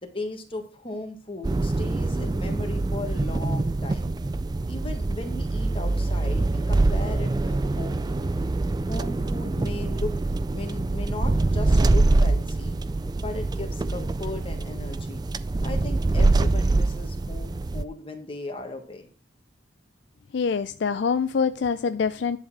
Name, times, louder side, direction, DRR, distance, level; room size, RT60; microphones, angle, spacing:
voice 1, 0.0-4.1 4.7-8.3 8.9-10.1 10.5-12.8 13.2-15.2 15.6-19.1, left 2 dB, 30° left, 1.5 m, -37 dB
sound 1, 1.4-17.8, right 2 dB, 20° right, 0.3 m, -24 dB
voice 2, 20.3-22.4, left 5 dB, 65° left, 0.4 m, -25 dB
10.5 x 4.1 x 6.1 m
head